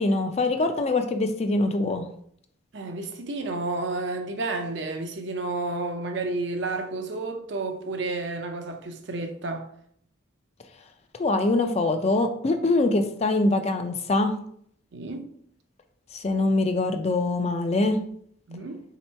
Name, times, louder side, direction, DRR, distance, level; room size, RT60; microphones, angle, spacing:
voice 1, 0.0-2.1 11.2-14.3 16.1-18.0, left 2 dB, 30° left, 0.4 m, -23 dB
voice 2, 2.7-9.7 14.9-15.3 18.5-18.8, right 2 dB, 60° right, 0.5 m, -31 dB
3.7 x 2.9 x 4.3 m
head